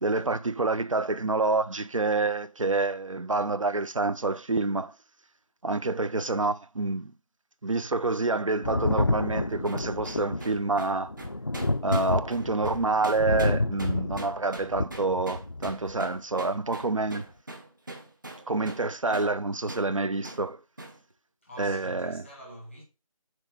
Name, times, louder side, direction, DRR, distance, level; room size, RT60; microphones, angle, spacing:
voice 1, 0.0-4.9 5.6-7.1 7.6-11.1 11.8-17.3 18.5-20.6 21.6-22.2, right 3 dB, 60° right, 0.6 m, -27 dB
Thunder, 8.6-16.0 17.1-17.2, left 2 dB, 45° left, 0.4 m, -29 dB
sound 1, 9.6-18.9 19.1-19.3 19.7-19.9 20.2-20.4 20.8-21.0, right 2 dB, 35° right, 0.9 m, -42 dB
voice 2, 21.4-22.8, equal, ahead, 0.9 m, -45 dB
6.4 x 4.1 x 3.9 m
figure-of-eight pair, 170°, 19 cm